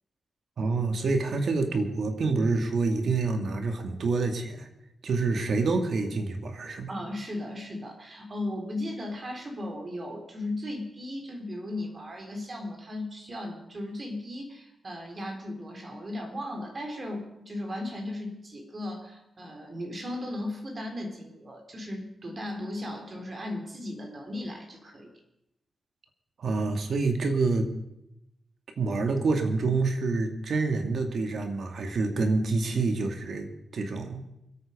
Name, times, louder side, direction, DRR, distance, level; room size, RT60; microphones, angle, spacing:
voice 1, 0.6-4.7 5.0-6.9 26.4-27.7 28.8-34.2, right 3 dB, 65° right, 5 dB, 2.3 m, -27 dB
voice 2, 6.9-25.1, left 1 dB, 40° right, 3 dB, 4.0 m, -36 dB
25.0 x 8.9 x 5.4 m, 0.86 s
cardioid pair, 80°, 0 cm